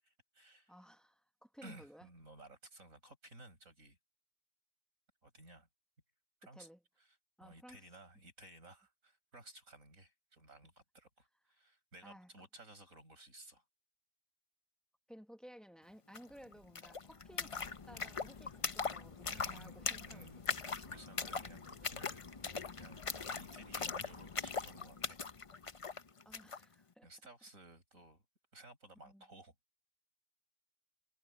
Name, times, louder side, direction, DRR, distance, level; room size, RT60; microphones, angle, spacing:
voice 1, 0.0-0.7 1.6-4.0 5.2-5.7 6.4-6.7 7.0-7.1 7.4-13.6 19.3-22.2 22.8-25.2 27.0-28.2 28.5-29.5, right 2 dB, 50° right, 7.6 m, -57 dB
voice 2, 0.7-2.1 6.5-6.8 7.4-7.8 12.0-12.3 15.1-20.3 26.2-27.1 29.0-29.2, equal, ahead, 1.1 m, -57 dB
sound 1, 16.1-16.2 16.5-26.6, left 5 dB, 45° left, 0.4 m, -41 dB
omnidirectional pair, 1.7 m